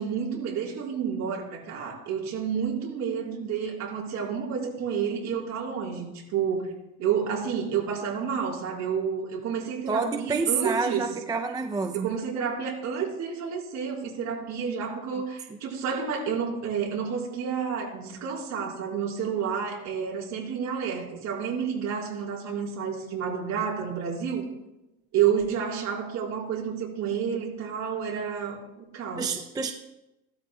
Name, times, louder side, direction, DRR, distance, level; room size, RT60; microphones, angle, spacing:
voice 1, 0.0-6.7 7.0-11.1 11.9-24.5 25.1-29.4, right 7 dB, 50° right, -3 dB, 4.0 m, -30 dB
voice 2, 9.9-12.1 29.2-29.7, right 5 dB, 10° right, 5 dB, 0.4 m, -28 dB
16.5 x 13.0 x 2.2 m, 0.96 s
cardioid pair, 150°, 36 cm